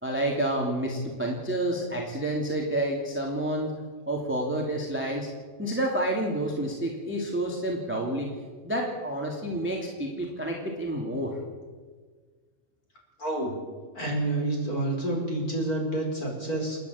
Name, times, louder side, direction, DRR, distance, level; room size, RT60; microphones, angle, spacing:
voice 1, 0.0-3.7 4.1-5.3 5.6-8.3 8.6-11.4, right 1 dB, 5° right, 0 dB, 2.2 m, -29 dB
voice 2, 13.2-13.6 13.9-16.8, right 1 dB, 25° left, 0 dB, 5.2 m, -28 dB
29.0 x 10.5 x 8.8 m, 1.5 s
omnidirectional pair, 4.0 m